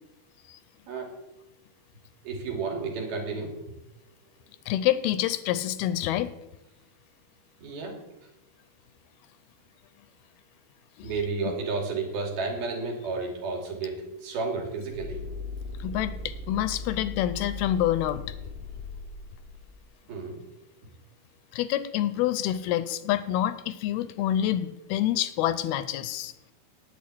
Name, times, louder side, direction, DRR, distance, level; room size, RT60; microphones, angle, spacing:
voice 1, 2.2-3.5 7.6-8.0 11.0-15.2 20.1-20.4, right 4 dB, 70° right, 1 dB, 4.4 m, -32 dB
voice 2, 4.7-6.3 11.0-11.1 15.8-18.4 21.5-26.3, left 12 dB, 85° left, 13 dB, 2.5 m, -27 dB
sound 1, 14.9-19.8, left 3 dB, 45° right, 2.3 m, -38 dB
9.1 x 8.5 x 9.4 m, 0.92 s
omnidirectional pair, 4.5 m